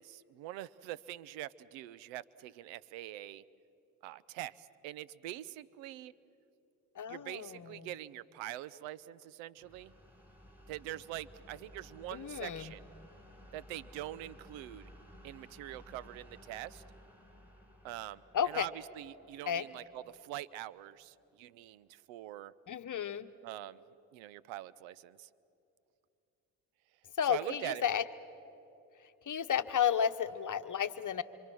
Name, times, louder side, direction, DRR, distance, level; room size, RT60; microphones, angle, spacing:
voice 1, 0.0-3.4 4.0-6.1 7.1-9.9 10.7-12.8 13.5-14.9 15.2-16.8 17.8-22.5 23.4-23.8 24.1-25.3 27.3-27.8, right 14 dB, 90° right, 20 dB, 0.7 m, -44 dB
voice 2, 6.9-7.9 12.1-12.7 18.3-18.7 19.5-19.7 22.7-23.3 27.2-28.0 29.3-31.2, left 8 dB, 45° left, 11 dB, 1.1 m, -32 dB
sound 1, 9.6-21.2, equal, 5° right, 6.1 m, -57 dB
26.5 x 25.5 x 6.3 m, 2.8 s
supercardioid pair, 65°, 44 cm